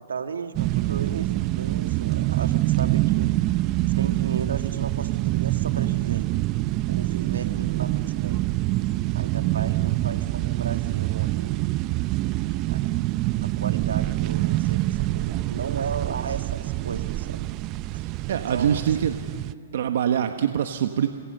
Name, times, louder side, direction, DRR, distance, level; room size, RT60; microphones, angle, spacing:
voice 1, 0.0-3.3 3.9-6.3 6.9-8.4 9.1-11.5 12.6-12.8 13.4-17.5 17.9-18.0 18.3-18.8 20.1-20.3, right 6 dB, 85° right, 7 dB, 1.9 m, -35 dB
sound 1, 0.5-19.5, right 17 dB, 35° right, 0.6 m, -25 dB
voice 2, 18.3-19.2 19.7-21.1, right 9 dB, 65° right, 7 dB, 1.2 m, -24 dB
28.5 x 27.0 x 6.7 m, 2.6 s
hypercardioid pair, 130°, 0 cm